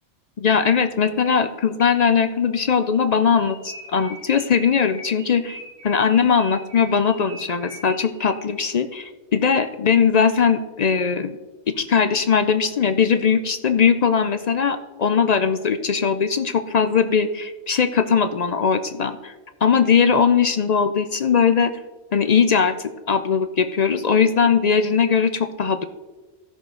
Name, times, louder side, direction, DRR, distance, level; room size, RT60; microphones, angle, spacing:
voice 1, 0.4-5.6 5.8-11.3 11.7-19.3 19.6-21.7 22.1-25.8, left 6 dB, 55° left, 9 dB, 0.4 m, -20 dB
sound 1, 3.3-8.7, equal, 60° right, 3.6 m, -41 dB
14.5 x 6.3 x 3.7 m, 1.2 s
omnidirectional pair, 1.2 m